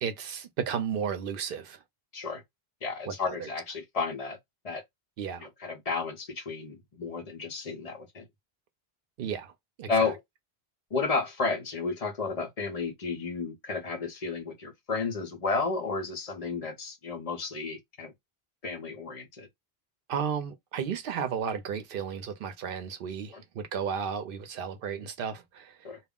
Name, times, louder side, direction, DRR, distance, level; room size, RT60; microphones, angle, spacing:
voice 1, 0.0-1.8 3.1-3.5 5.2-5.5 9.2-9.5 9.8-10.1 20.1-25.8, right 7 dB, 65° right, 0.7 m, -33 dB
voice 2, 2.8-4.4 4.6-4.8 5.4-8.2 9.9-10.2 10.9-18.1 18.6-19.5 23.3-23.4 25.8-26.0, left 4 dB, 40° left, 0.7 m, -32 dB
2.3 x 2.0 x 3.5 m
omnidirectional pair, 1.0 m